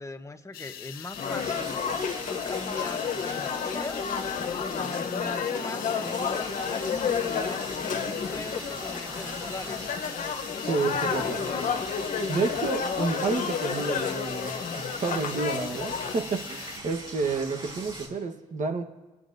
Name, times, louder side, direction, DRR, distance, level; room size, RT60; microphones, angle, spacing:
voice 1, 0.0-1.8 2.3-4.1 4.6-9.9 10.7-11.8, left 2 dB, 20° left, 7 dB, 1.1 m, -40 dB
sound 1, 0.5-16.8, left 10 dB, 75° left, 0.6 m, -42 dB
sound 2, 1.1-18.1, right 2 dB, 30° right, 4.2 m, -42 dB
sound 3, 1.2-16.1, left 6 dB, 55° left, 0.9 m, -31 dB
voice 2, 10.6-11.4 12.3-18.8, right 4 dB, 55° right, 6 dB, 1.3 m, -30 dB
24.0 x 8.9 x 2.7 m, 1.2 s
supercardioid pair, 55°, 16 cm